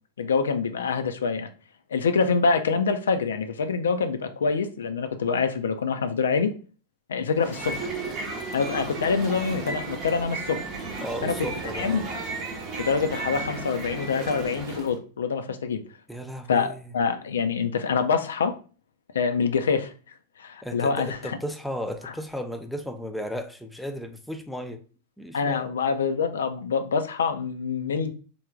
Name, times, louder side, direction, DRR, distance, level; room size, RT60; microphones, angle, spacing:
voice 1, 0.2-1.5 1.9-6.5 7.1-7.9 8.5-10.7 11.2-11.5 11.7-12.0 12.8-15.8 16.5-18.6 19.1-19.9 20.4-21.4 25.3-28.1, left 5 dB, 65° left, 0.4 m, -25 dB
sound 1, 7.3-15.0, right 3 dB, 35° right, 0.7 m, -34 dB
voice 2, 11.0-12.0 16.1-16.9 20.6-24.8 25.2-25.7, equal, ahead, 0.4 m, -35 dB
3.3 x 2.2 x 3.6 m
figure-of-eight pair, 90°, 0 cm